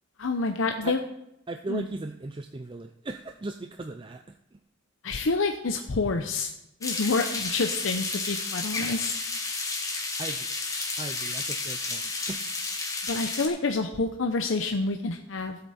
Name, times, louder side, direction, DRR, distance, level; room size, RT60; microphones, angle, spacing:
voice 1, 0.2-1.0 1.7-1.9 5.0-6.5 6.8-9.1 13.1-15.6, left 3 dB, 85° left, 5 dB, 0.8 m, -28 dB
voice 2, 1.5-4.6 10.2-10.5 11.0-12.5, right 2 dB, 25° right, 6 dB, 0.5 m, -38 dB
sound 1, 6.8-13.5, left 3 dB, 15° left, 1.5 m, -32 dB
14.5 x 8.0 x 4.2 m, 0.82 s
head